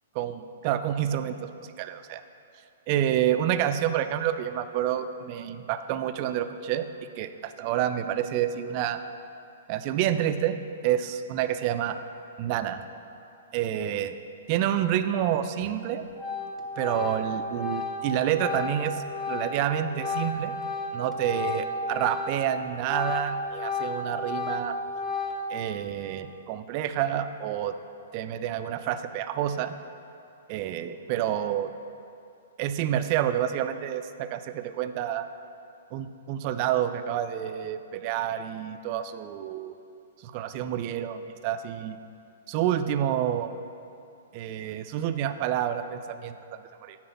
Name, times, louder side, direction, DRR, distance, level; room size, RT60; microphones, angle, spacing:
voice 1, 0.2-1.5 1.8-2.2 2.9-6.9 7.2-9.0 9.7-10.6 10.8-12.0 12.4-12.8 13.5-14.2 14.5-16.0 16.8-20.5 20.9-24.8 25.5-27.8 28.1-29.7 30.5-31.7 32.6-35.3 35.9-39.7 40.2-42.0 42.5-43.5 44.3-47.0, right 10 dB, 35° right, 10 dB, 0.4 m, -28 dB
Organ, 15.6-15.9 16.2-22.5 22.8-25.7, left 3 dB, 5° left, 0.7 m, -33 dB
10.0 x 4.3 x 5.9 m, 2.6 s
figure-of-eight pair, 110°, 0 cm